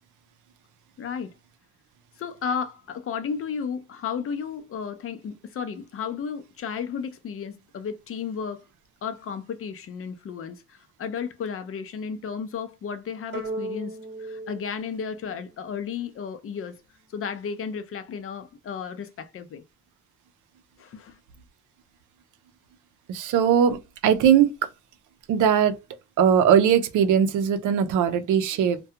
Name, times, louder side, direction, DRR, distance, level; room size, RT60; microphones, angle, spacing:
voice 1, 1.0-1.3 2.2-8.7 9.0-16.8 17.1-19.6 20.8-21.2, left 6 dB, 45° left, 0.5 m, -33 dB
sound 1, 13.3-15.9, right 2 dB, 35° right, 1.1 m, -37 dB
voice 2, 23.1-24.7 25.3-25.8 26.2-28.8, right 8 dB, 80° right, 0.5 m, -20 dB
2.3 x 2.2 x 2.7 m
cardioid pair, 90°, 30 cm